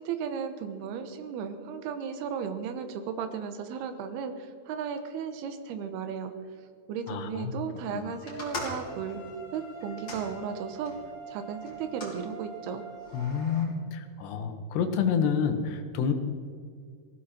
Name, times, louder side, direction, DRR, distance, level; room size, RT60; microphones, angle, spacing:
voice 1, 0.0-6.3 6.6-9.2 9.5-10.9 11.3-12.8, right 7 dB, 75° right, 8 dB, 3.1 m, -35 dB
voice 2, 7.1-7.6 8.0-8.1 13.1-16.1, left 6 dB, 85° left, 7 dB, 3.4 m, -28 dB
sound 1, 7.7-13.5, right 3 dB, 50° left, 5.2 m, -45 dB
sound 2, 8.3-11.0 11.6-12.2 13.0-13.6, left 2 dB, 25° left, 3.4 m, -41 dB
19.0 x 16.0 x 4.4 m, 2.1 s
omnidirectional pair, 4.7 m